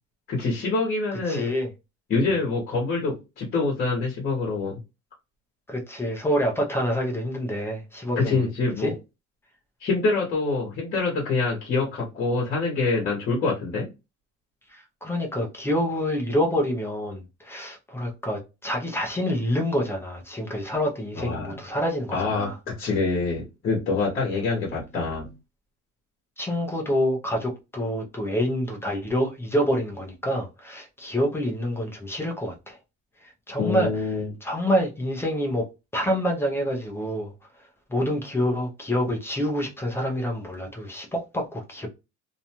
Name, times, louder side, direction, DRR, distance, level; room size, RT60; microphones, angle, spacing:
voice 1, 0.3-1.4 2.1-4.8 8.2-8.9 9.8-13.9 21.2-21.6 22.1-25.4 33.6-34.3, left 3 dB, 30° left, 0.8 m, -25 dB
voice 2, 1.3-1.7 5.7-8.5 8.8-8.9 14.7-22.5 24.3-24.4 26.4-32.8 33.5-33.9 34.4-37.3 37.9-41.9, equal, 10° left, 0.3 m, -27 dB
2.5 x 2.2 x 2.8 m
cardioid pair, 180°, 31 cm